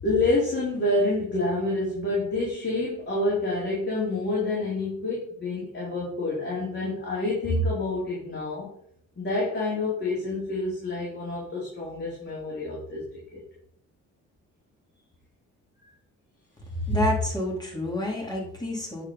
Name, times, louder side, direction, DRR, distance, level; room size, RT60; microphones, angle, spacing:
voice 1, 0.0-8.7 9.2-13.0 13.3-13.4, left 2 dB, 35° left, -6 dB, 4.2 m, -27 dB
voice 2, 16.9-19.0, left 1 dB, 15° left, -2 dB, 3.8 m, -27 dB
9.6 x 5.2 x 5.6 m, 0.66 s
cardioid pair, 90°, 30 cm